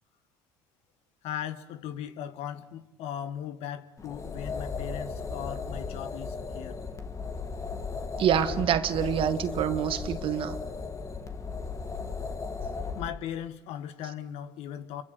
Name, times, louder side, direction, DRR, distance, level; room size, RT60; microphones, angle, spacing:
voice 1, 1.2-6.8 12.9-15.0, left 10 dB, 65° left, 1.7 m, -38 dB
sound 1, 4.0-13.1, left 4 dB, 30° left, 2.4 m, -36 dB
voice 2, 8.2-10.6, right 10 dB, 50° right, 1.9 m, -26 dB
28.5 x 23.0 x 6.9 m
hypercardioid pair, 75°, 11 cm